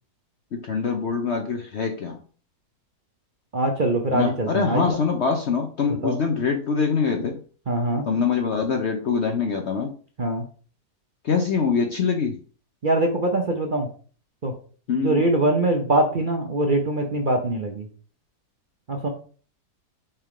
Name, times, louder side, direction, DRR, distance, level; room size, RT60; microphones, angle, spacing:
voice 1, 0.5-2.2 4.1-7.4 8.1-10.0 11.2-12.4 14.9-15.2, left 5 dB, 55° left, 4 dB, 0.8 m, -24 dB
voice 2, 3.5-5.0 5.9-6.2 7.7-8.0 10.2-10.4 12.8-13.9 14.4-14.5 15.0-17.8 18.9-19.1, right 2 dB, 45° right, 2 dB, 0.7 m, -23 dB
5.7 x 3.6 x 4.8 m, 0.41 s
omnidirectional pair, 1.8 m